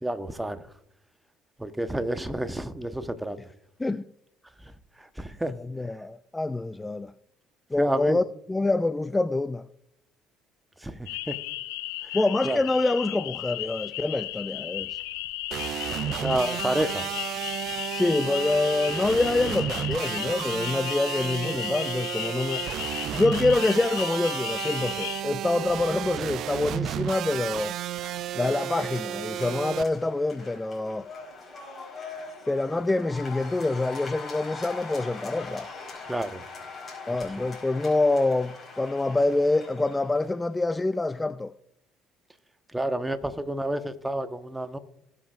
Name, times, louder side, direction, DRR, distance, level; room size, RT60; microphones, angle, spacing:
voice 1, 0.0-0.6 1.6-3.4 5.0-5.5 7.8-8.2 10.8-11.0 11.3-11.4 12.4-12.6 16.2-17.0 36.1-36.4 42.7-44.8, right 1 dB, 10° right, 1.1 m, -29 dB
voice 2, 5.5-7.1 7.7-9.7 12.1-15.0 16.1-16.2 17.9-22.7 23.1-27.8 28.3-31.1 32.5-35.7 37.1-41.5, left 2 dB, 15° left, 0.4 m, -26 dB
sound 1, 11.1-25.2, left 16 dB, 75° left, 0.6 m, -35 dB
sound 2, 15.5-29.8, right 11 dB, 60° right, 0.3 m, -32 dB
sound 3, 28.0-40.4, left 4 dB, 35° left, 4.7 m, -42 dB
19.5 x 7.4 x 2.5 m
hypercardioid pair, 55°, 0 cm